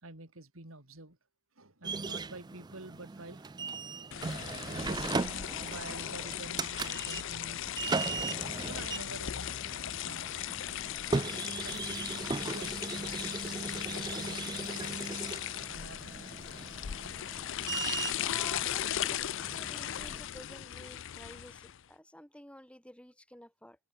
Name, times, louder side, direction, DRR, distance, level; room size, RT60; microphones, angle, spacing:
voice 1, 0.0-1.2 1.6-4.2 4.7-7.7 8.7-9.6 10.0-10.8 11.6-11.9 12.4-15.1 15.7-16.4, right 2 dB, 75° right, 3.8 m, -48 dB
sound 1, 1.8-20.2, right 4 dB, 20° right, 0.4 m, -38 dB
sound 2, 4.1-21.8, left 11 dB, 60° left, 0.5 m, -37 dB
voice 2, 18.2-23.8, left 1 dB, 5° left, 5.4 m, -51 dB
head